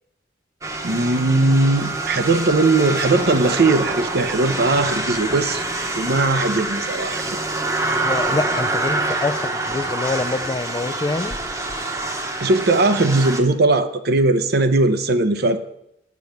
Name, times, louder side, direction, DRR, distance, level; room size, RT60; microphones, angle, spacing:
sound 1, 0.6-13.4, right 2 dB, 20° right, 1.0 m, -26 dB
voice 1, 0.8-5.6 6.0-7.4 12.4-15.6, right 2 dB, 60° right, 9 dB, 0.7 m, -19 dB
voice 2, 8.0-11.4, left 3 dB, 20° left, 13 dB, 0.3 m, -25 dB
9.3 x 7.0 x 5.8 m, 0.81 s
head